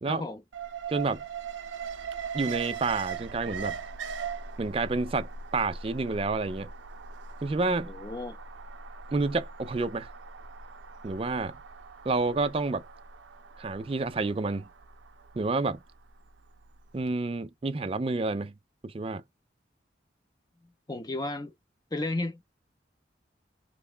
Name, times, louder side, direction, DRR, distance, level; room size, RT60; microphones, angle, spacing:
voice 1, 0.1-0.4 7.9-8.4 20.9-21.5 21.9-22.4, left 2 dB, 20° left, 0.6 m, -33 dB
Alarm, 0.5-16.6 17.0-17.1, right 6 dB, 85° right, 0.5 m, -40 dB
voice 2, 0.9-1.2 2.3-3.8 4.6-6.7 7.4-7.9 9.1-10.1 11.0-11.6 12.0-12.8 13.6-14.7 15.4-15.8 16.9-18.5 18.8-19.2, right 3 dB, 30° right, 0.3 m, -29 dB
3.0 x 2.2 x 3.7 m
head